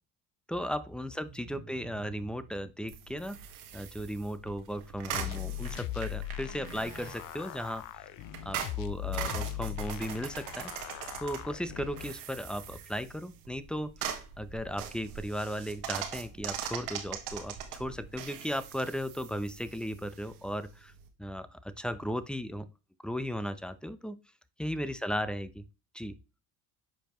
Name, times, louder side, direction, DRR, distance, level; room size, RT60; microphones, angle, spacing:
voice 1, 0.5-3.4 3.7-7.9 8.4-20.9 21.2-22.7 23.0-24.2 24.6-25.6 25.9-26.2, equal, ahead, 13 dB, 0.7 m, -36 dB
sound 1, 1.3-2.7 5.0-6.1 6.4-7.2 8.9-10.1, right 9 dB, 45° right, 1.1 m, -50 dB
sound 2, 2.9-21.1, right 9 dB, 80° right, 1.4 m, -42 dB
sound 3, 5.1-12.1, left 17 dB, 50° left, 0.5 m, -39 dB
8.7 x 5.2 x 3.1 m, 0.30 s
hypercardioid pair, 65°, 43 cm